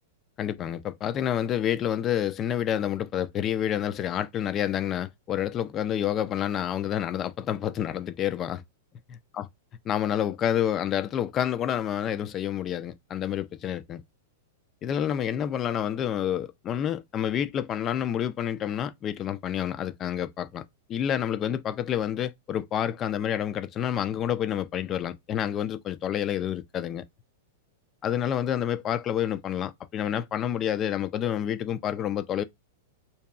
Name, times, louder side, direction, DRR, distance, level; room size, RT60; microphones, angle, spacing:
voice 1, 0.4-8.6 9.1-9.4 9.9-14.0 14.8-20.6 20.9-27.0 28.0-32.4, left 10 dB, 30° left, 0.3 m, -28 dB
2.6 x 2.2 x 2.3 m
hypercardioid pair, 115°, 0 cm